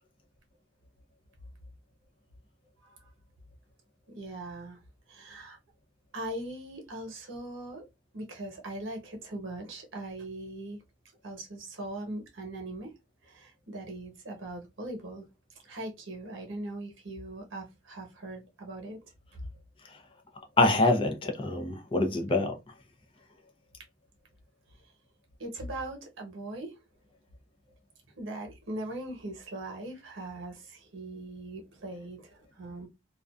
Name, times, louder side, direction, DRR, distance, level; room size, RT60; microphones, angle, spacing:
voice 1, 4.1-4.8 5.1-5.6 6.1-7.9 8.1-10.8 11.2-12.9 13.2-15.2 15.6-19.0 25.4-26.8 28.1-32.9, right 1 dB, 85° right, 0.9 m, -40 dB
voice 2, 20.6-22.6, left 2 dB, 25° left, 0.5 m, -25 dB
2.5 x 2.2 x 2.3 m
head